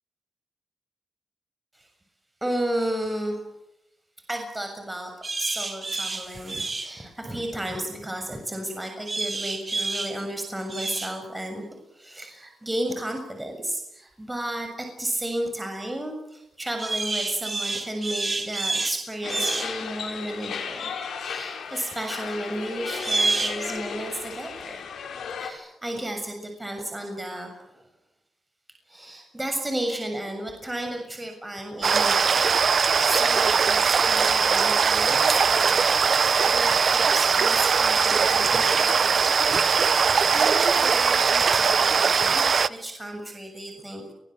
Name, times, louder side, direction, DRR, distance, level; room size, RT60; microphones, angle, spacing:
voice 1, 2.4-3.5 4.3-11.6 11.9-20.9 21.2-25.1 25.4-27.8 28.9-44.0, right 1 dB, 15° right, 4 dB, 7.2 m, -33 dB
sound 1, 5.2-6.9 9.1-10.1 10.7-11.1 16.8-19.0 19.3-19.7 23.0-23.6, right 3 dB, 30° right, 4.7 m, -28 dB
sound 2, 19.2-25.5, left 6 dB, 85° left, 6.5 m, -35 dB
sound 3, 31.8-42.7, right 6 dB, 60° right, 1.0 m, -20 dB
29.5 x 23.0 x 8.0 m, 0.85 s
cardioid pair, 75°, 0 cm